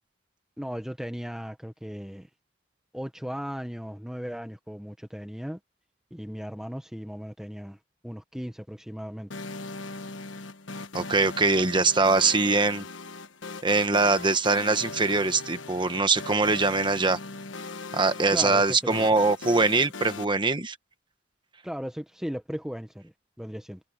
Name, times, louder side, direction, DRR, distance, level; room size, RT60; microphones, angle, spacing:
voice 1, 0.6-2.3 2.9-5.6 6.1-9.3 18.3-19.0 21.6-23.8, equal, 5° right, 1.1 m, -36 dB
sound 1, 9.3-20.2, left 3 dB, 85° left, 1.2 m, -39 dB
voice 2, 10.9-12.9 13.6-17.2 17.9-20.8, right 3 dB, 25° right, 1.3 m, -23 dB
head